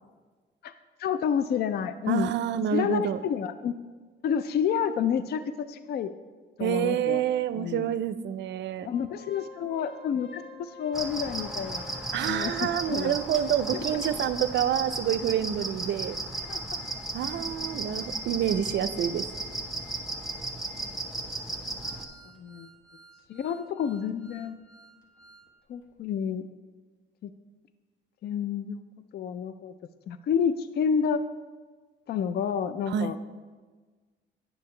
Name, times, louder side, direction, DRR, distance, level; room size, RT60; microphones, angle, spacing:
voice 1, 1.0-2.3 2.7-3.7 4.2-6.1 6.6-7.2 7.5-7.9 8.8-11.8 12.2-13.1 13.7-13.8 16.5-16.6 22.4-22.7 23.3-24.6 25.7-26.5 27.2-27.3 28.2-28.8 29.1-29.7 30.1-31.2 32.1-33.2, left 7 dB, 55° left, 12 dB, 0.4 m, -29 dB
voice 2, 2.1-3.2 6.6-8.9 12.1-16.2 17.1-19.3 32.9-33.1, right 9 dB, 65° right, 13 dB, 0.4 m, -28 dB
Organ, 8.9-14.4 14.9-15.0 15.3-15.4 15.9-25.5 25.8-25.9, left 3 dB, 80° left, 1.1 m, -51 dB
sound 1, 10.9-22.0, right 2 dB, ahead, 0.9 m, -35 dB
9.8 x 6.7 x 3.2 m, 1.4 s
cardioid pair, 90°, 20 cm